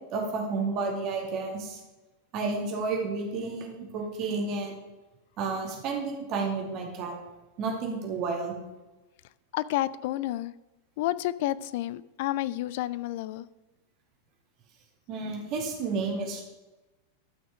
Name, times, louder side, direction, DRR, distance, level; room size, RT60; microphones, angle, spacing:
voice 1, 0.1-1.8 2.3-4.8 5.4-7.1 7.6-8.6 15.1-16.4, right 4 dB, 40° right, 1 dB, 2.4 m, -31 dB
voice 2, 9.5-10.5 11.0-13.5, left 15 dB, 50° left, 18 dB, 0.4 m, -30 dB
12.0 x 6.1 x 4.9 m, 1.1 s
figure-of-eight pair, 90°, 0 cm